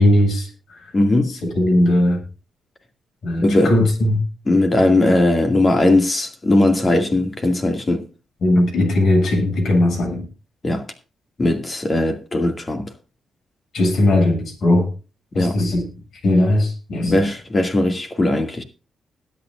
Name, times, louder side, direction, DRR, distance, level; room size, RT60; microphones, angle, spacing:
voice 1, 0.0-0.9 1.3-2.2 3.2-4.2 8.4-10.3 13.7-14.9 15.3-15.9 16.2-17.3, left 1 dB, 65° left, 7.7 m, -18 dB
voice 2, 0.9-1.3 3.4-3.7 4.5-8.0 10.6-10.9 11.4-12.9 15.3-15.6 17.1-18.6, left 2 dB, 30° left, 2.2 m, -18 dB
20.5 x 8.9 x 2.5 m
cardioid pair, 80°, 0 cm